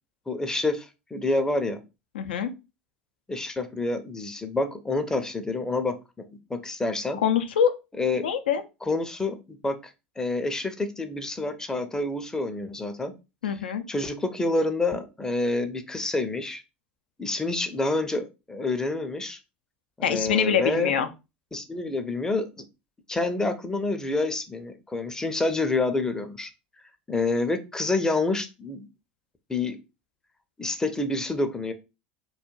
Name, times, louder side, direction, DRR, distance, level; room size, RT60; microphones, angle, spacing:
voice 1, 0.3-1.8 3.3-7.2 8.0-8.2 8.8-13.1 13.9-16.6 17.2-19.4 20.0-20.9 21.5-22.5 23.1-26.5 27.1-28.9 29.5-29.8 30.6-31.7, left 2 dB, 10° left, 8 dB, 0.5 m, -28 dB
voice 2, 2.1-2.5 7.2-7.7 8.1-8.6 13.4-13.8 20.0-21.1, left 8 dB, 80° left, 9 dB, 0.4 m, -24 dB
2.3 x 2.1 x 3.0 m, 0.27 s
hypercardioid pair, 80°, 5 cm